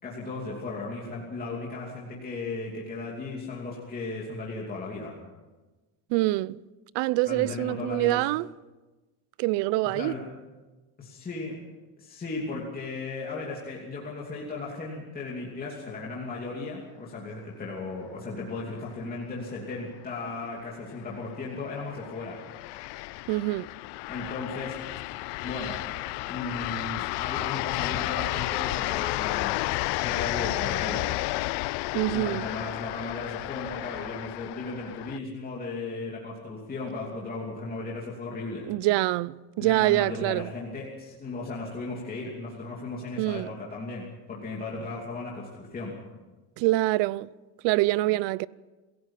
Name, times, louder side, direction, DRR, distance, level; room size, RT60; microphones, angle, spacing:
voice 1, 0.0-5.1 7.3-8.2 9.9-10.2 11.0-11.6 12.0-22.4 24.1-24.7 25.4-25.7 26.3-29.6 30.0-31.1 32.1-38.7 39.6-45.9, left 3 dB, 20° left, 2.9 m, -36 dB
voice 2, 6.1-6.6 6.9-8.5 9.4-10.1 23.3-23.7 31.9-32.4 38.7-40.5 43.2-43.5 46.6-47.3 47.6-48.5, right 18 dB, 75° right, 0.6 m, -25 dB
sound 1, 20.3-35.2, left 21 dB, 70° left, 0.5 m, -32 dB
27.0 x 16.5 x 5.7 m
cardioid pair, 170°, 43 cm